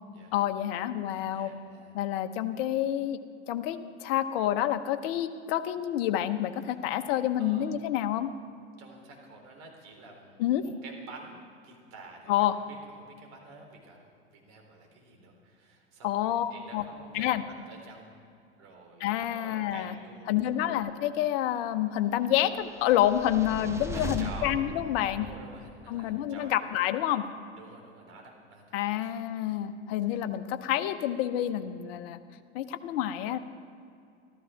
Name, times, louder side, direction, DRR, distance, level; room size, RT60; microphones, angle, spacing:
voice 1, 0.3-1.5 1.9-3.2 3.5-8.3 10.4-10.6 12.3-12.6 16.0-16.8 17.1-17.4 19.0-19.9 20.3-25.3 25.9-27.2 28.7-32.2 32.5-33.4, left 12 dB, 55° left, 9 dB, 0.9 m, -28 dB
voice 2, 1.1-1.9 7.4-7.8 8.8-18.2 18.6-20.8 23.9-24.6 25.2-26.7 27.6-29.1 29.4-29.6 30.0-30.2, right 3 dB, 45° right, 1 dB, 3.7 m, -49 dB
sound 1, 22.5-25.9, right 1 dB, 10° right, 1.1 m, -39 dB
14.5 x 13.5 x 5.8 m, 2.4 s
figure-of-eight pair, 85°, 36 cm